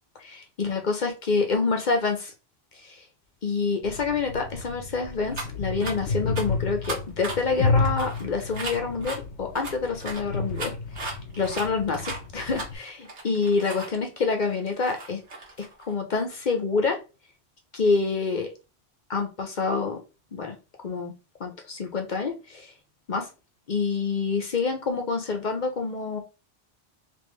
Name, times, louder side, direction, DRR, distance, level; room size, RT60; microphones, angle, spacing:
voice 1, 0.2-2.3 2.8-3.0 3.4-10.7 11.0-15.2 15.6-17.0 17.7-18.5 19.1-20.0 20.3-20.5 20.8-21.1 21.4-22.7 23.1-23.3 23.7-26.2, left 4 dB, 50° left, 4 dB, 0.8 m, -27 dB
sound 1, 3.8-12.7, left 3 dB, 90° left, 1.0 m, -31 dB
sound 2, 5.3-5.5 5.8-5.9 6.4-6.5 6.8-9.2 9.6-13.9 14.3-15.9, right 2 dB, 80° right, 1.5 m, -36 dB
3.6 x 3.0 x 3.2 m, 0.30 s
omnidirectional pair, 1.1 m